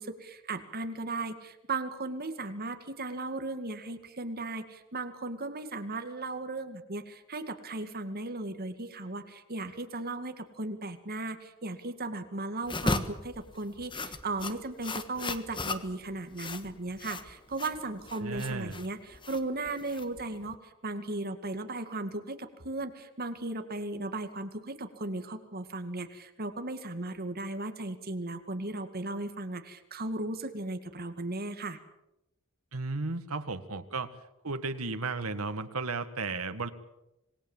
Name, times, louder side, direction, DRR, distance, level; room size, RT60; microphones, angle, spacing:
voice 1, 0.0-31.8, right 2 dB, 45° right, 8 dB, 2.2 m, -36 dB
sound 1, 12.6-20.5, left 2 dB, 25° left, 1.5 m, -37 dB
voice 2, 18.2-18.8 32.7-34.1 34.4-36.7, right 3 dB, 80° right, 9 dB, 1.8 m, -34 dB
26.5 x 20.0 x 7.4 m, 0.90 s
head